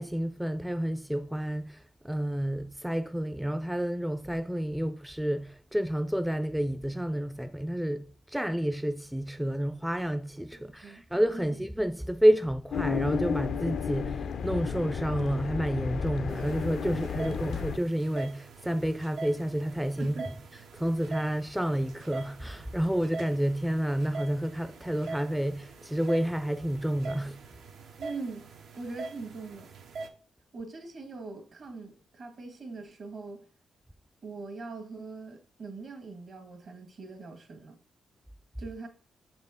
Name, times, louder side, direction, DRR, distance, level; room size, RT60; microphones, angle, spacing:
voice 1, 0.0-20.2 20.7-27.4, equal, 5° right, 0.4 m, -29 dB
voice 2, 10.5-11.0 11.3-11.6 20.0-20.3 28.0-28.5 28.7-29.7 30.5-33.5 34.2-37.8 38.6-38.9, right 3 dB, 60° right, 1.5 m, -42 dB
sound 1, 12.7-17.8, left 7 dB, 70° left, 0.4 m, -33 dB
sound 2, 16.3-30.1, right 3 dB, 85° right, 0.7 m, -43 dB
6.5 x 4.3 x 3.5 m
cardioid pair, 65°, 0 cm